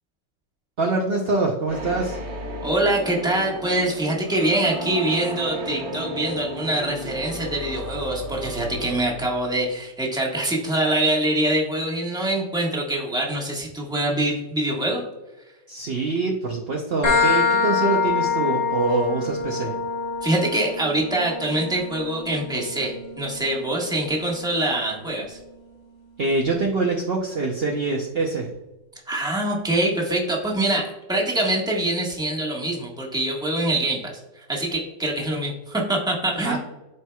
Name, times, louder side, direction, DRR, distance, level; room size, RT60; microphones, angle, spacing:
voice 1, 0.8-2.2 15.7-19.7 26.2-28.5 36.4-36.6, right 3 dB, 65° right, 0 dB, 0.6 m, -24 dB
sound 1, 1.7-9.6, right 1 dB, 45° right, 1.1 m, -34 dB
voice 2, 2.6-15.0 20.2-25.4 29.1-34.2 34.5-36.6, right 1 dB, 5° right, -2 dB, 1.1 m, -24 dB
sound 2, 17.0-24.5, left 5 dB, 60° left, 3.0 m, -26 dB
12.0 x 4.5 x 2.3 m, 1.0 s
omnidirectional pair, 2.0 m